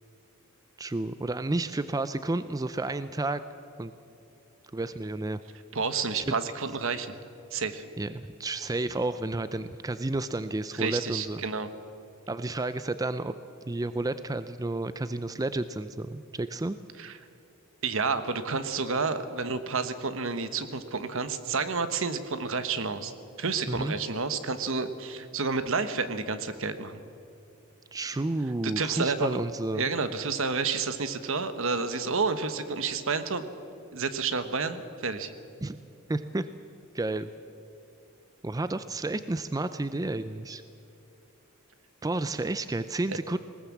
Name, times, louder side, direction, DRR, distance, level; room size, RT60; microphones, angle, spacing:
voice 1, 0.8-3.4 3.8-3.9 4.7-5.4 6.1-6.2 8.0-11.4 12.3-13.3 13.7-16.8 23.7-23.9 27.9-29.9 35.6-35.8 36.1-36.5 36.9-37.3 38.4-40.6 42.0-43.4, right 2 dB, 15° right, 12 dB, 0.4 m, -31 dB
voice 2, 5.7-7.1 7.5-7.8 10.7-11.7 17.0-17.2 17.8-23.1 23.4-27.0 28.8-29.4 29.7-33.4 33.9-35.3 43.1-43.2, right 4 dB, 65° right, 11 dB, 1.2 m, -30 dB
20.0 x 18.5 x 7.3 m, 2.7 s
head